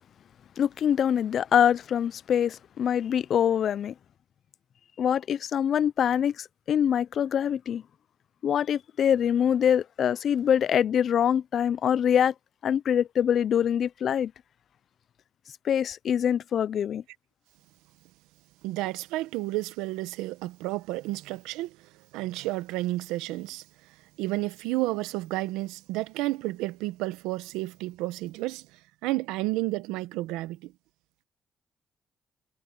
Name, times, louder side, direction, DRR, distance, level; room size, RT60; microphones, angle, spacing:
voice 1, 0.6-3.9 5.0-7.8 8.4-12.3 12.6-14.3 15.6-17.0, left 9 dB, 65° left, 0.6 m, -24 dB
voice 2, 18.6-21.8 22.1-23.6 24.2-28.7 29.0-30.7, right 18 dB, 85° right, 1.2 m, -31 dB
supercardioid pair, 55°, 0 cm